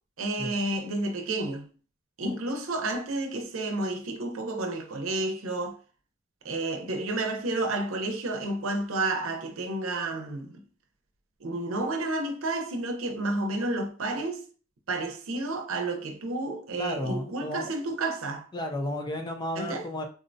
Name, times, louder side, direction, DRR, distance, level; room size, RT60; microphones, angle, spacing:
voice 1, 0.2-1.7 2.2-5.8 6.4-10.6 11.4-14.4 14.9-18.5 19.5-19.9, right 2 dB, 85° right, 0.7 m, -31 dB
voice 2, 16.8-17.7 18.5-20.0, left 1 dB, 20° left, 0.4 m, -33 dB
3.7 x 2.1 x 2.6 m
head